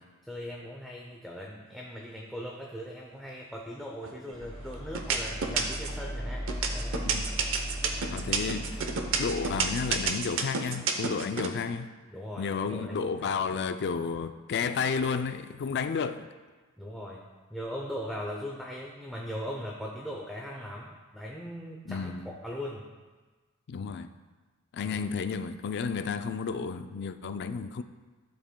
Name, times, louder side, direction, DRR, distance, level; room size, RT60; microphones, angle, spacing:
voice 1, 0.2-7.0 12.1-13.3 16.8-17.2 17.5-22.9 24.8-25.0, equal, ahead, -3 dB, 0.6 m, -39 dB
sound 1, 4.0-4.5 4.9-6.0 6.5-11.5, right 6 dB, 60° right, 0.7 m, -29 dB
sound 2, 4.3-10.1, equal, 25° left, 1.3 m, -37 dB
voice 2, 8.1-8.9 9.2-11.9 12.4-16.2 21.9-22.3 23.7-24.1 24.7-27.8, left 5 dB, 50° left, 10 dB, 0.4 m, -32 dB
12.0 x 7.3 x 2.2 m, 1.3 s
head